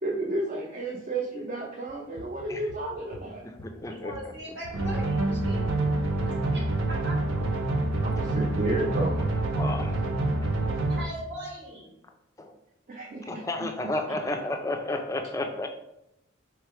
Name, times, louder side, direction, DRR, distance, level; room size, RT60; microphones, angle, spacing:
voice 1, 0.0-3.4 8.0-9.3 12.9-13.9, right 2 dB, 40° right, -1 dB, 0.5 m, -32 dB
sound 1, 1.9-3.8 4.1-7.9 8.2-9.5, left 2 dB, 80° left, 0.5 m, -45 dB
voice 2, 2.9-3.3 3.9-5.7 6.5-7.4 10.9-11.9, equal, 60° right, -5 dB, 1.6 m, -40 dB
voice 3, 3.4-4.3 8.2-8.3 9.6-10.0 10.4-10.5 12.4-12.6 13.3-15.7, left 2 dB, 15° left, 5 dB, 0.4 m, -32 dB
sound 2, 4.7-11.0, right 2 dB, 85° right, 0.8 m, -27 dB
3.3 x 3.2 x 4.7 m, 0.85 s
head